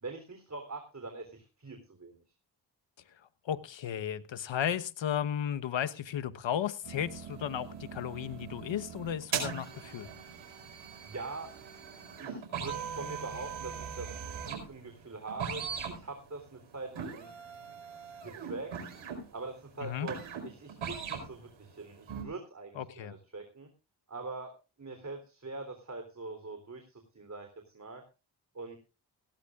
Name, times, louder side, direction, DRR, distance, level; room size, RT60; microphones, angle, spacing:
voice 1, 0.0-2.2 11.0-11.5 12.2-14.1 14.5-17.3 18.1-18.7 19.3-20.2 20.4-23.7 24.1-24.5 24.8-27.5 27.7-28.0 28.5-28.8, right 3 dB, 35° right, 5 dB, 3.6 m, -43 dB
voice 2, 3.4-10.1 19.8-20.1 22.7-23.2, left 9 dB, 70° left, 12 dB, 1.2 m, -34 dB
sound 1, 6.8-21.4 21.8-22.2, right 6 dB, 80° right, 4.9 m, -40 dB
17.5 x 16.0 x 2.5 m, 0.32 s
supercardioid pair, 50°, 47 cm